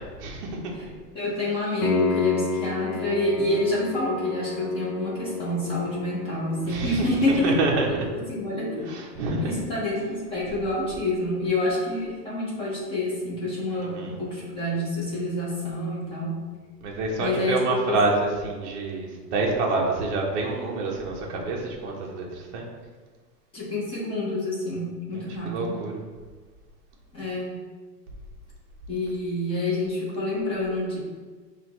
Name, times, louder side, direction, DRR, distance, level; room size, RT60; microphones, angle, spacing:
voice 1, 0.2-0.9 6.6-8.1 8.8-9.6 13.7-14.1 16.8-22.7 25.1-26.0, right 3 dB, 45° right, -1 dB, 0.7 m, -27 dB
voice 2, 1.1-7.6 7.9-8.9 9.4-16.4 17.2-17.6 17.9-18.0 23.5-25.8 27.1-27.6 28.9-31.0, left 1 dB, 10° left, -7 dB, 0.8 m, -27 dB
Piano, 1.8-12.5 15.8-15.9, left 4 dB, 40° left, 0.4 m, -34 dB
5.9 x 2.5 x 2.9 m, 1.4 s
supercardioid pair, 160°, 50 cm